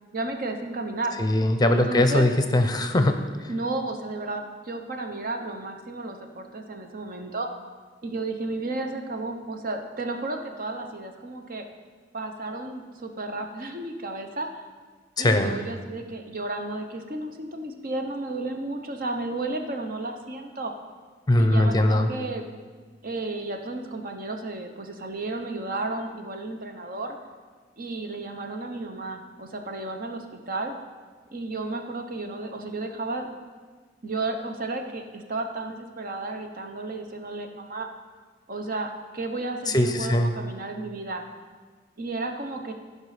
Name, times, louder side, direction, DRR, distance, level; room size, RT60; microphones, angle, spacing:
voice 1, 0.1-1.2 1.7-2.2 3.5-7.5 8.0-11.6 12.1-14.6 15.2-20.7 21.4-22.5 23.0-27.2 27.8-30.7 31.3-33.3 34.0-37.9 38.5-41.2 42.0-42.7, right 2 dB, 50° right, 5 dB, 1.0 m, -33 dB
voice 2, 1.2-3.2 15.2-15.5 21.3-22.1 39.7-40.3, left 1 dB, 20° left, 7 dB, 0.7 m, -21 dB
15.5 x 5.4 x 5.0 m, 1.5 s
head